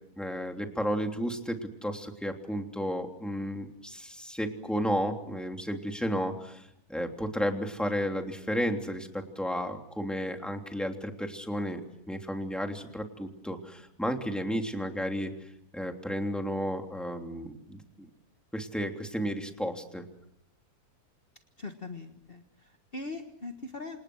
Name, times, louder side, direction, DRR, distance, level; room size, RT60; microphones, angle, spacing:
voice 1, 0.2-11.8 12.1-15.3 15.7-18.1 18.5-20.0, equal, ahead, 3 dB, 3.1 m, -33 dB
voice 2, 21.6-24.0, left 3 dB, 35° left, 5 dB, 1.7 m, -41 dB
29.0 x 27.0 x 6.4 m, 0.75 s
omnidirectional pair, 1.6 m